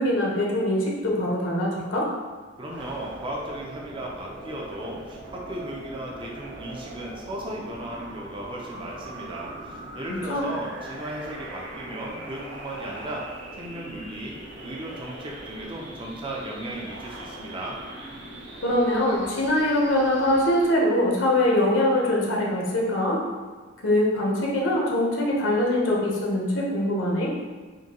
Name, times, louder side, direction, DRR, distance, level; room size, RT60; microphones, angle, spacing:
voice 1, 0.0-2.1 10.1-10.5 18.6-23.2 23.8-27.3, left 1 dB, 75° left, -3 dB, 0.9 m, -23 dB
voice 2, 2.6-13.3 13.6-14.4 14.6-17.8, right 1 dB, 25° right, -2 dB, 0.5 m, -36 dB
sound 1, 2.7-20.7, right 1 dB, 65° right, 0.8 m, -41 dB
5.1 x 2.2 x 2.9 m, 1.4 s
head